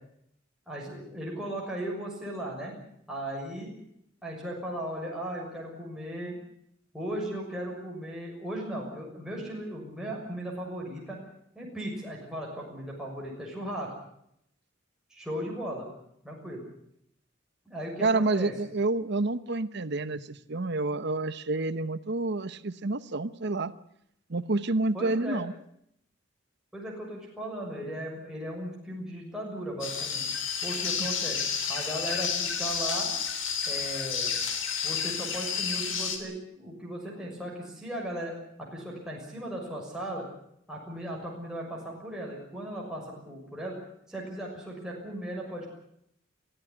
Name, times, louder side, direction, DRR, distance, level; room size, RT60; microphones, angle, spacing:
voice 1, 0.7-2.7 3.1-3.7 4.2-6.3 6.9-11.2 11.5-13.9 15.1-15.9 16.2-16.6 17.6-18.5 24.9-25.4 26.7-30.2 30.6-31.4 31.7-33.1 33.7-34.4 34.8-40.3 40.7-43.8 44.1-45.7, right 1 dB, 5° right, -3 dB, 6.6 m, -37 dB
voice 2, 18.0-23.7 24.3-25.5 31.0-31.1, right 2 dB, 60° right, 13 dB, 0.9 m, -29 dB
sound 1, 29.8-36.2, left 6 dB, 70° left, 3.7 m, -31 dB
24.0 x 15.0 x 9.8 m, 0.74 s
head